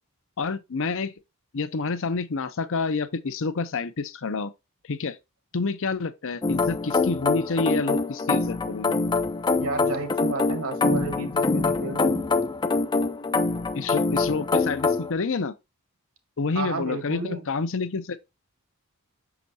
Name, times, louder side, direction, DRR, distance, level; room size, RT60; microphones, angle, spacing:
voice 1, 0.4-1.1 1.5-4.5 4.9-5.2 5.5-9.0 13.8-15.5 16.4-17.2 17.5-18.2, left 4 dB, 60° left, 0.6 m, -28 dB
sound 1, 6.4-15.1, left 3 dB, 20° left, 0.4 m, -24 dB
voice 2, 9.6-12.2 16.5-17.4, right 3 dB, 65° right, 1.5 m, -32 dB
6.2 x 5.9 x 2.7 m
head